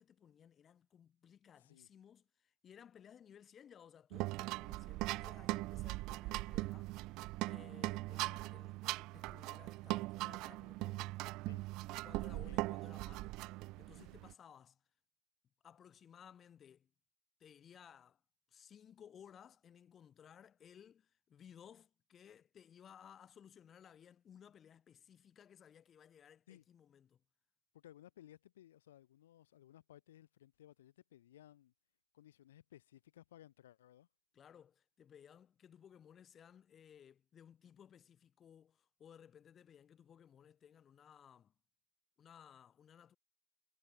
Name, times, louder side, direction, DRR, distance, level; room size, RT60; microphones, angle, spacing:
voice 1, 0.0-7.1 7.5-11.1 11.9-14.8 15.6-16.9 17.4-18.2 18.5-27.2 34.3-41.5 42.2-43.2, left 8 dB, 25° left, 6.6 m, -60 dB
voice 2, 1.6-1.9 11.4-11.6 11.9-12.1 12.3-12.6 26.5-26.6 27.7-31.7 32.1-34.1, left 12 dB, 65° left, 6.8 m, -60 dB
sound 1, 4.1-14.3, right 21 dB, 45° right, 0.8 m, -40 dB
figure-of-eight pair, 90°, 0 cm